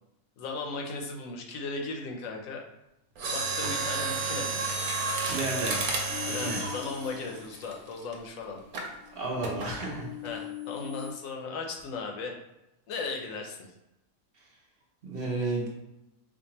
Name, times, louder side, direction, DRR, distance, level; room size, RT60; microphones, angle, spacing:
voice 1, 0.4-2.6 3.3-4.6 6.3-8.6 10.2-12.4 12.9-13.7, left 3 dB, 70° left, 1 dB, 0.9 m, -36 dB
sound 1, 2.9-4.0 4.3-5.0 5.3-5.7 6.1-6.7 8.5-8.7 9.1-9.5, right 1 dB, 90° right, 1.2 m, -45 dB
Mechanisms, 3.2-8.1 8.7-9.0 9.6-9.9 10.3-10.4, right 3 dB, 70° right, 1.1 m, -31 dB
voice 2, 5.2-5.8 6.2-6.6 9.1-10.1 15.0-15.7, right 2 dB, 55° right, -2 dB, 0.7 m, -32 dB
sound 2, 6.1-8.0 8.6-11.1, left 14 dB, ahead, 0.8 m, -43 dB
4.5 x 2.4 x 2.8 m, 0.91 s
omnidirectional pair, 1.6 m